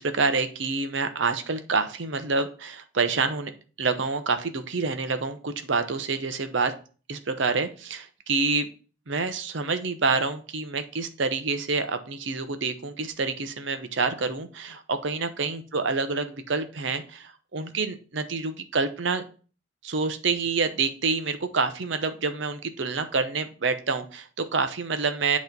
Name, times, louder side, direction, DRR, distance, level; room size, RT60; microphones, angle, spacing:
voice 1, 0.0-3.5 3.8-6.7 7.1-8.7 9.1-19.2 19.8-25.4, right 4 dB, 60° right, 9 dB, 0.7 m, -27 dB
8.2 x 3.1 x 5.2 m, 0.38 s
head